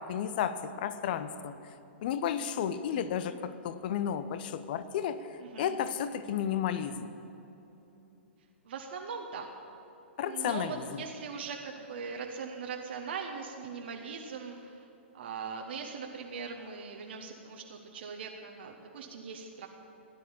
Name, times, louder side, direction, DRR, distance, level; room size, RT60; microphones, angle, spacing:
voice 1, 0.0-1.5 2.0-7.1 10.2-11.0, left 9 dB, 50° left, 12 dB, 0.9 m, -33 dB
voice 2, 5.4-5.7 8.6-9.5 10.2-14.9 15.1-19.7, right 5 dB, 60° right, 1 dB, 1.4 m, -40 dB
16.5 x 10.5 x 7.3 m, 2.9 s
figure-of-eight pair, 110°, 7 cm